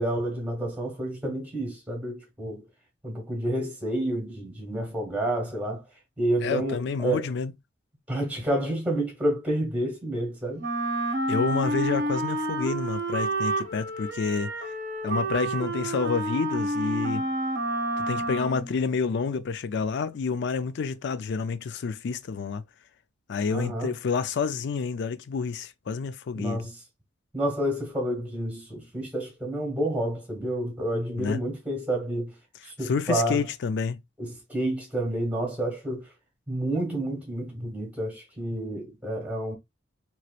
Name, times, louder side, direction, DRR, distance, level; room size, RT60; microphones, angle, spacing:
voice 1, 0.0-2.6 3.0-5.8 6.2-7.2 8.1-10.6 23.5-23.9 26.4-26.8 27.3-32.3 32.6-33.5 34.2-36.0 36.5-39.6, right 1 dB, 5° right, 1.4 m, -29 dB
voice 2, 6.4-7.5 11.3-14.5 15.0-17.3 18.0-22.6 23.3-26.6 31.2-31.4 32.8-34.0, left 5 dB, 55° left, 0.4 m, -29 dB
Wind instrument woodwind instrument, 10.6-18.7, right 1 dB, 50° right, 0.7 m, -29 dB
3.0 x 3.0 x 2.3 m
head